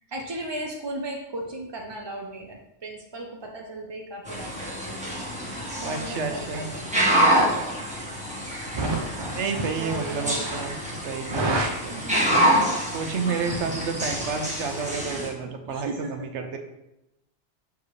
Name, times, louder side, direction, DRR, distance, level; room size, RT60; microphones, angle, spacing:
voice 1, 0.1-5.2 5.8-7.9 8.7-12.4 13.2-14.5 14.8-16.1, right 2 dB, 35° right, 0 dB, 0.4 m, -34 dB
sound 1, 4.3-15.3, right 1 dB, 5° right, 1.2 m, -27 dB
voice 2, 5.8-6.7 8.8-8.9 9.4-11.6 12.3-12.4 12.9-16.6, right 5 dB, 80° right, 5 dB, 1.0 m, -30 dB
6.8 x 4.8 x 3.2 m, 0.89 s
omnidirectional pair, 1.2 m